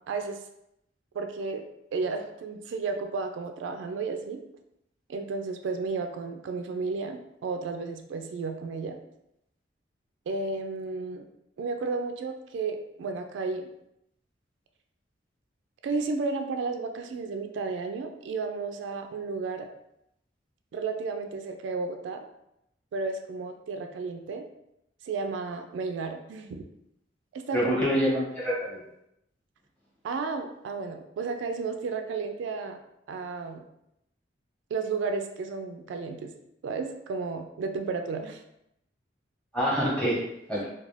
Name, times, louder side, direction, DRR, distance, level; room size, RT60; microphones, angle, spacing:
voice 1, 0.1-0.4 1.1-1.6 1.9-4.4 5.1-9.0 10.3-11.3 11.6-13.7 15.8-19.7 20.7-22.3 22.9-24.5 25.0-26.6 27.3-27.8 30.0-32.8 33.1-33.6 34.7-36.3 36.6-38.4 40.6-40.7, right 4 dB, 80° right, 5 dB, 0.3 m, -33 dB
voice 2, 27.5-28.8 39.5-40.2 40.5-40.6, equal, 5° left, -7 dB, 0.9 m, -26 dB
2.4 x 2.2 x 3.2 m, 0.80 s
head